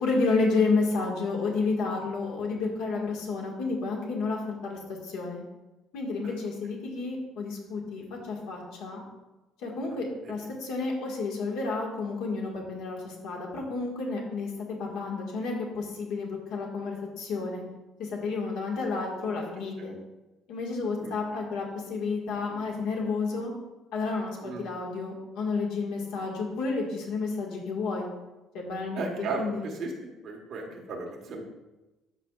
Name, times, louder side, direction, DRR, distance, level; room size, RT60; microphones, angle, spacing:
voice 1, 0.0-5.4 5.9-9.0 9.6-17.6 18.0-19.9 20.5-23.5 23.9-28.1 28.5-29.6, left 4 dB, 75° left, -1 dB, 1.7 m, -31 dB
voice 2, 28.9-31.4, right 3 dB, 40° right, 0 dB, 1.3 m, -36 dB
12.5 x 4.9 x 2.4 m, 1.1 s
cardioid pair, 175°, 0 cm